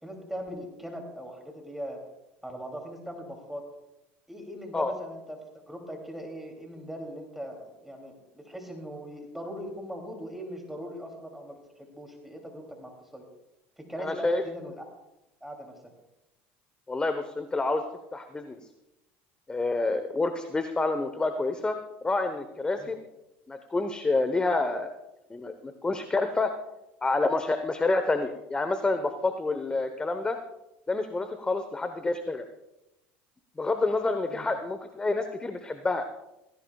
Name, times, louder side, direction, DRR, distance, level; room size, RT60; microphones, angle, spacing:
voice 1, 0.0-2.0 2.4-3.6 4.3-5.4 5.7-13.2 13.8-14.8 15.4-15.7 22.8-22.9 34.3-34.5, equal, 5° right, 2 dB, 2.8 m, -40 dB
voice 2, 14.0-14.4 16.9-17.8 18.1-18.6 19.5-23.0 23.5-24.9 25.3-26.5 27.0-30.4 30.9-32.4 33.6-36.1, left 3 dB, 15° left, 8 dB, 1.0 m, -28 dB
17.5 x 16.5 x 2.4 m, 0.93 s
supercardioid pair, 100°, 6 cm